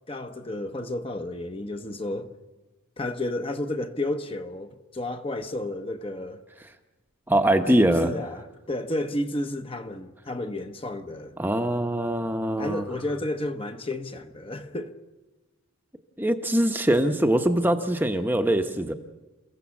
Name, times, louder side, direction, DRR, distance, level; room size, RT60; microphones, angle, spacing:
voice 1, 0.1-2.3 3.0-6.4 7.7-11.4 12.6-15.0, left 1 dB, 25° left, 0.9 m, -32 dB
voice 2, 7.3-8.1 11.4-12.8 16.2-18.9, right 1 dB, 10° right, 0.9 m, -23 dB
29.5 x 16.0 x 7.2 m
head